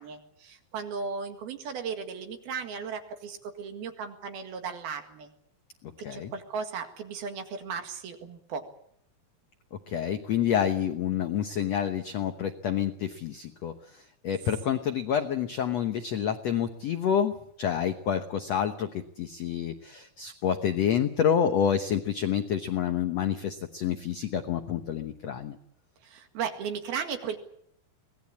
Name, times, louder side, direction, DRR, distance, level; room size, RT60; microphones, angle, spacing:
voice 1, 0.0-5.3 6.0-8.7 26.0-27.4, right 6 dB, 70° right, 6 dB, 3.7 m, -36 dB
voice 2, 6.0-6.3 9.7-25.6, left 8 dB, 90° left, 8 dB, 1.4 m, -28 dB
23.5 x 19.0 x 8.6 m, 0.72 s
omnidirectional pair, 4.7 m